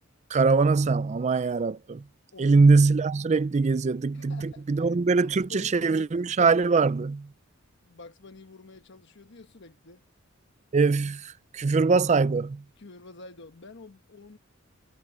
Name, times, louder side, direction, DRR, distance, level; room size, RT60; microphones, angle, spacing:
voice 1, 0.3-2.0 2.4-7.3 10.7-12.6, right 4 dB, 35° right, 0.4 m, -22 dB
voice 2, 2.3-2.7 4.1-6.1 7.8-10.0 12.8-14.4, left 3 dB, 60° left, 1.2 m, -48 dB
head